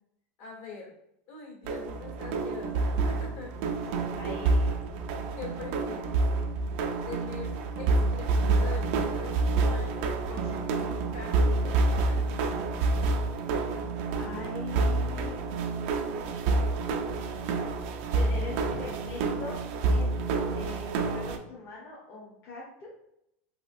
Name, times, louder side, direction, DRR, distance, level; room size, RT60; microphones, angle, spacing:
voice 1, 0.4-0.9 1.3-4.1 5.4-6.2 7.0-12.3, left 5 dB, 65° left, -2 dB, 1.5 m, -44 dB
sound 1, 1.6-21.4, right 3 dB, 65° right, 0.4 m, -28 dB
voice 2, 4.2-4.9 14.2-15.7 17.4-17.7 18.1-19.6 19.9-20.2 20.5-22.9, left 3 dB, 40° left, -4 dB, 0.8 m, -42 dB
3.3 x 2.8 x 2.5 m, 0.79 s
supercardioid pair, 135°, 7 cm